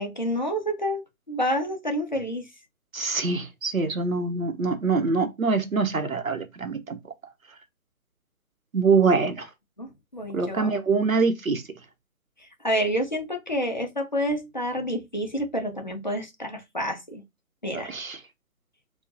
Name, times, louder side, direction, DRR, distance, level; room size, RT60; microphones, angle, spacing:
voice 1, 0.0-2.5 9.8-10.7 12.4-17.2 17.6-17.9, equal, 30° left, 0.6 m, -29 dB
voice 2, 2.9-7.0 8.7-9.5 10.3-11.6 17.7-18.2, right 4 dB, 65° right, 0.8 m, -24 dB
4.3 x 2.3 x 2.5 m
figure-of-eight pair, 150°, 45 cm